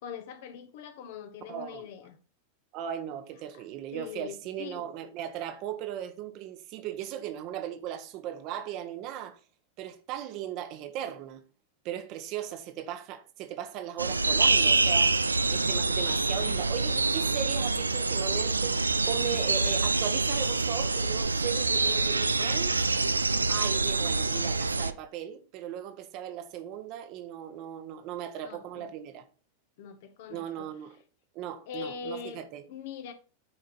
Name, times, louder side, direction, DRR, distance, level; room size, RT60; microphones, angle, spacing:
voice 1, 0.0-2.2 3.5-3.6 3.9-4.8 28.4-28.9 29.8-30.7 31.7-33.1, left 6 dB, 50° left, 1.2 m, -42 dB
voice 2, 1.5-1.9 2.7-9.4 9.8-11.4 11.8-15.1 15.5-22.7 23.5-29.2 30.3-31.0 31.3-32.6, right 10 dB, 40° right, 1.1 m, -37 dB
sound 1, 14.0-24.9, right 3 dB, 80° right, 0.4 m, -26 dB
9.9 x 5.1 x 4.3 m
figure-of-eight pair, 90°, 0 cm